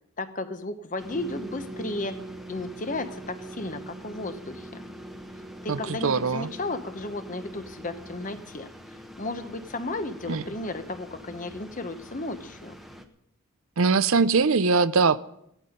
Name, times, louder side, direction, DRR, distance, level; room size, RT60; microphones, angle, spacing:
voice 1, 0.2-2.2 2.5-4.8 5.6-8.7 9.2-12.7, left 2 dB, 35° left, 9 dB, 1.0 m, -34 dB
sound 1, 1.0-13.0, left 1 dB, ahead, 1.0 m, -46 dB
sound 2, 1.1-8.6, right 2 dB, 25° right, 1.3 m, -43 dB
voice 2, 5.7-6.5 10.3-10.4 13.8-15.2, right 4 dB, 65° right, 15 dB, 0.6 m, -22 dB
16.5 x 12.5 x 5.2 m, 0.75 s
head